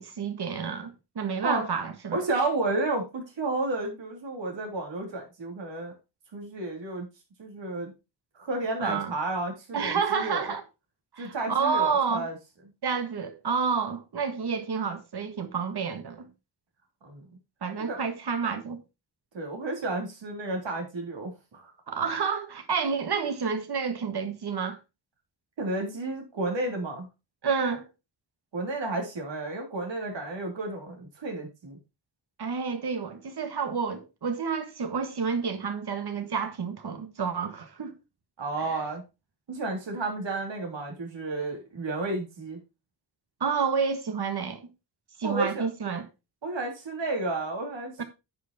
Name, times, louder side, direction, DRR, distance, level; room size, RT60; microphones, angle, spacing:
voice 1, 0.0-2.2 8.8-9.1 9.7-10.6 11.1-12.3 12.8-16.3 17.6-18.8 21.9-24.8 27.4-27.9 32.4-38.0 38.7-38.8 43.4-44.6 45.2-46.1 48.0-48.1, right 5 dB, 60° right, 1.7 m, -29 dB
voice 2, 2.1-5.9 6.3-7.1 7.4-7.9 8.4-10.5 11.2-12.4 17.0-17.3 17.8-18.0 19.3-21.7 25.6-27.1 28.5-31.8 38.4-39.0 39.5-42.6 45.2-45.7 46.4-48.0, right 2 dB, 80° right, 3.4 m, -32 dB
9.4 x 5.8 x 4.2 m
wide cardioid pair, 95°, 44 cm